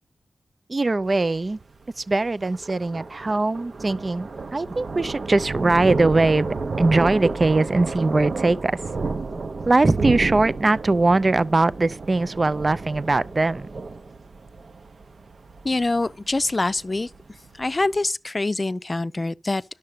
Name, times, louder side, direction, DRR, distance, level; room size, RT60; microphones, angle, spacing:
voice 1, 0.7-1.6 2.0-6.5 6.8-8.8 9.7-13.7, right 2 dB, 35° right, 0.5 m, -21 dB
Thunder, 1.0-18.0, right 3 dB, 55° right, 0.8 m, -32 dB
voice 2, 15.6-17.1 17.6-19.6, left 2 dB, 30° left, 0.5 m, -24 dB
11.5 x 6.7 x 5.0 m
wide cardioid pair, 75°, 0 cm